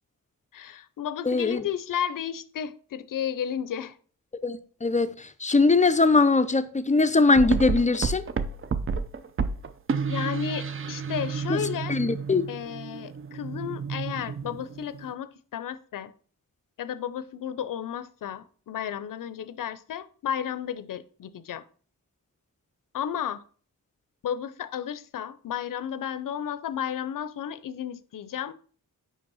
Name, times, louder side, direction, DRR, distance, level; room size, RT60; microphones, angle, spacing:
voice 1, 0.5-3.9 10.1-12.0 12.5-16.1 16.8-21.6 22.9-23.4 24.2-28.5, left 9 dB, 70° left, 0.5 m, -33 dB
voice 2, 1.3-1.6 4.4-8.2 11.5-11.6 11.9-12.5, left 3 dB, 20° left, 0.4 m, -21 dB
sound 1, 7.3-15.1, right 5 dB, 40° right, 0.5 m, -31 dB
5.3 x 5.1 x 5.4 m
wide cardioid pair, 150°, 34 cm